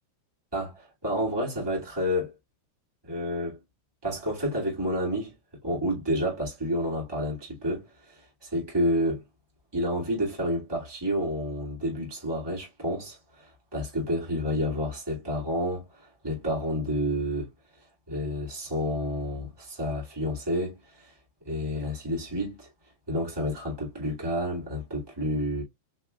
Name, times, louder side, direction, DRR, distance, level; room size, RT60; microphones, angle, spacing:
voice 1, 0.5-2.3 3.0-3.6 4.0-5.3 5.6-9.2 9.7-17.5 18.1-21.1 21.4-22.7 23.1-25.6, equal, 10° right, 1.1 m, -30 dB
5.7 x 3.2 x 2.3 m
omnidirectional pair, 4.7 m